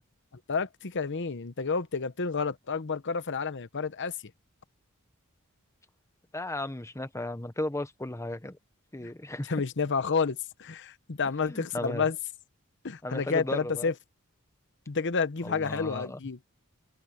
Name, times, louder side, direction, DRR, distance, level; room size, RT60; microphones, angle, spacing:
voice 1, 0.5-4.1 9.5-12.1 12.8-13.9 14.9-16.4, left 5 dB, 55° left, 0.9 m, -30 dB
voice 2, 6.3-8.6 8.9-9.6 11.5-12.1 13.0-13.9 15.4-16.2, left 1 dB, 15° left, 1.1 m, -35 dB
head